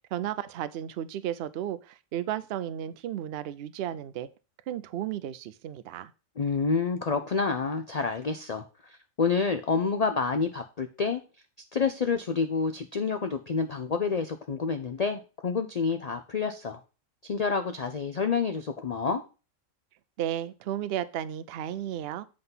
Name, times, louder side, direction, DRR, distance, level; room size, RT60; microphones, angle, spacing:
voice 1, 0.1-4.3 4.7-6.1 20.2-22.2, right 11 dB, 60° right, 0.6 m, -33 dB
voice 2, 6.4-11.2 11.7-16.8 17.2-19.2, left 5 dB, 85° left, 0.3 m, -28 dB
7.9 x 3.8 x 5.5 m
omnidirectional pair, 1.5 m